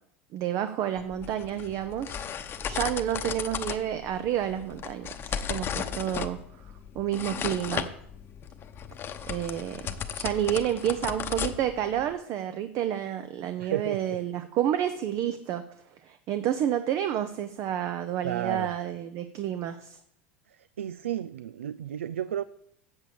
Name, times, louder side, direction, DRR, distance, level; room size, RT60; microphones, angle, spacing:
voice 1, 0.3-2.2 2.6-6.4 6.9-7.9 9.3-9.8 10.1-15.6 16.0-20.0, right 10 dB, 50° right, 10 dB, 0.7 m, -30 dB
sound 1, 1.0-12.1, left 8 dB, 35° left, 0.9 m, -35 dB
voice 2, 13.6-14.2 18.2-18.7 20.8-22.4, right 10 dB, 85° right, 16 dB, 0.4 m, -32 dB
8.1 x 7.1 x 7.0 m, 0.70 s
hypercardioid pair, 90°, 7 cm